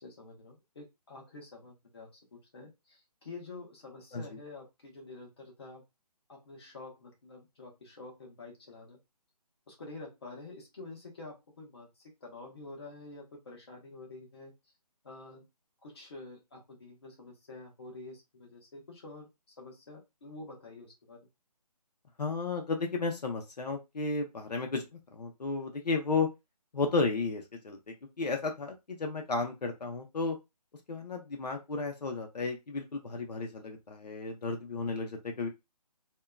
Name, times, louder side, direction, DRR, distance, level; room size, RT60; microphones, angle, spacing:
voice 1, 0.0-5.8 6.3-9.0 9.7-14.5 15.0-15.5 15.8-19.3 19.6-21.2, left 3 dB, 40° left, -1 dB, 1.1 m, -48 dB
voice 2, 22.2-24.8 25.1-26.3 26.7-30.4 30.9-35.5, left 3 dB, 80° left, 3 dB, 0.9 m, -33 dB
2.8 x 2.2 x 2.3 m, 0.22 s
hypercardioid pair, 175°, 21 cm